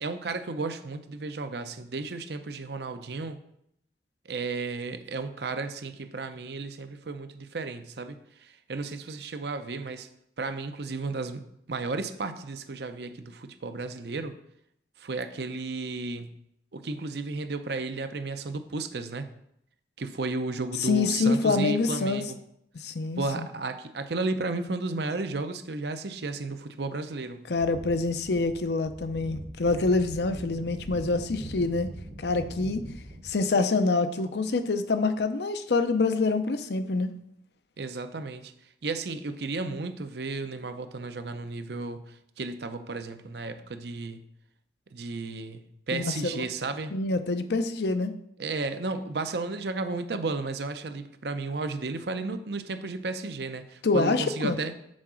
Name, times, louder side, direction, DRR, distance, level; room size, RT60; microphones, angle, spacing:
voice 1, 0.0-3.4 4.3-10.1 10.4-11.4 11.7-14.3 15.0-16.4 16.7-19.3 20.0-22.4 23.2-27.5 37.8-38.5 38.8-44.2 44.9-46.9 48.4-54.7, right 3 dB, 70° right, 9 dB, 0.6 m, -33 dB
voice 2, 20.8-22.2 22.8-23.5 27.5-31.9 32.2-32.9 33.2-37.1 45.9-46.5 46.9-48.1 53.8-54.6, left 3 dB, 70° left, 9 dB, 0.6 m, -26 dB
sound 1, 27.5-33.5, right 1 dB, 35° right, 0.8 m, -42 dB
6.3 x 4.7 x 6.2 m, 0.76 s
head